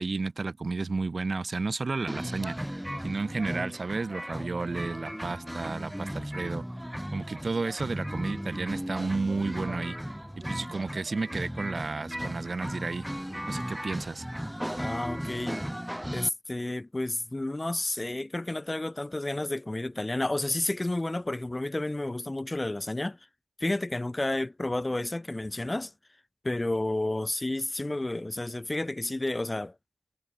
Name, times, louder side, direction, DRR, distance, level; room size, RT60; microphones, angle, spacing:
voice 1, 0.0-6.6 7.1-10.0 10.5-13.1 13.5-14.2, right 3 dB, 60° right, 0.5 m, -32 dB
sound 1, 2.1-16.3, equal, 5° right, 0.8 m, -36 dB
voice 2, 14.8-15.6 16.1-23.2 23.6-25.9 26.4-29.7, left 2 dB, 30° left, 0.8 m, -31 dB
cardioid pair, 45°, 0 cm